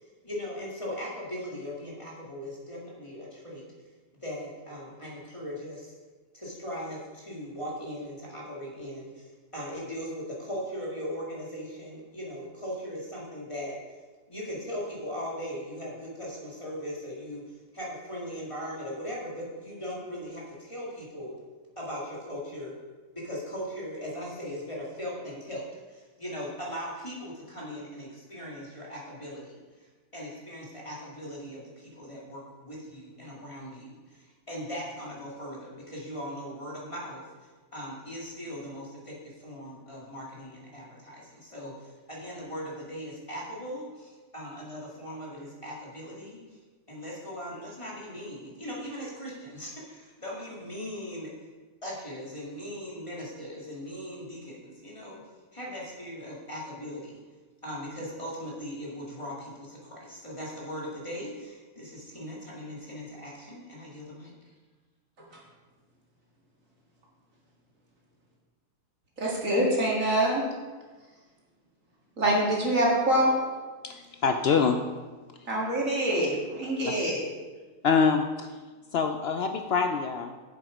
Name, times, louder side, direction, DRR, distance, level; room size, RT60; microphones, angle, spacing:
voice 1, 0.2-3.6 4.2-5.9 6.3-14.0 14.3-17.5 17.7-21.4 21.8-22.7 23.1-25.6 25.9-29.6 30.1-37.2 37.7-46.4 46.9-51.3 51.8-55.2 55.5-57.2 57.6-64.3, equal, 20° left, -5 dB, 2.2 m, -39 dB
voice 2, 69.2-70.4 72.2-73.3 75.5-77.2, right 1 dB, 55° right, -3 dB, 2.4 m, -25 dB
voice 3, 74.2-74.8 76.9-77.0 77.8-78.5 78.9-80.4, left 5 dB, 90° left, 6 dB, 0.5 m, -25 dB
7.8 x 7.7 x 5.0 m, 1.3 s
omnidirectional pair, 1.7 m